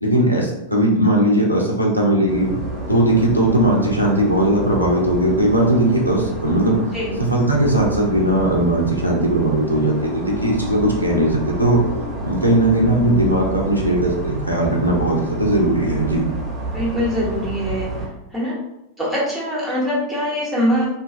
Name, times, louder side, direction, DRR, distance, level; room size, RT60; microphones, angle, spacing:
voice 1, 0.0-2.5 2.9-6.8 7.2-11.8 12.2-16.2, right 1 dB, 90° right, -2 dB, 0.5 m, -18 dB
sound 1, 2.3-18.1, right 2 dB, 25° right, 0.9 m, -30 dB
voice 2, 6.9-7.2 16.7-18.0 18.3-18.5 19.0-20.9, equal, ahead, -8 dB, 1.0 m, -23 dB
2.5 x 2.2 x 2.5 m, 0.89 s
figure-of-eight pair, 90°, 0 cm